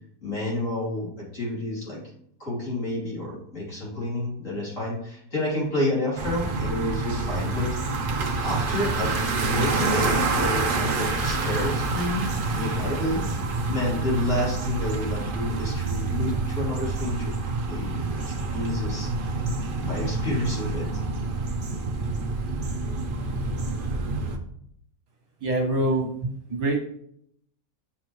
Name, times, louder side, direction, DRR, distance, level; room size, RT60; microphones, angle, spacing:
voice 1, 0.2-2.0 2.4-13.4 13.6-19.1 19.4-19.5 19.8-20.9, left 1 dB, 50° left, -6 dB, 3.7 m, -30 dB
sound 1, 6.2-24.4, right 3 dB, 40° right, 0.9 m, -27 dB
voice 2, 25.4-26.8, right 1 dB, 65° right, 0 dB, 2.1 m, -25 dB
7.3 x 7.2 x 3.1 m, 0.70 s
omnidirectional pair, 1.7 m